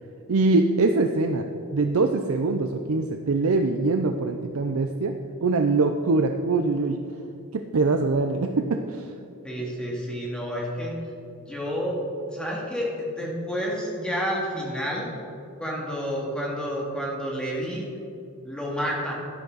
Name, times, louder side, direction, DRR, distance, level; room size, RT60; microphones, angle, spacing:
voice 1, 0.3-1.5 1.7-5.1 5.4-7.0 7.5-9.1, right 3 dB, 70° right, 5 dB, 0.5 m, -23 dB
voice 2, 9.4-11.0 11.4-12.0 12.3-15.1 15.6-17.9 18.4-19.1, equal, 5° left, -4 dB, 2.2 m, -30 dB
13.0 x 10.5 x 4.0 m, 2.7 s
head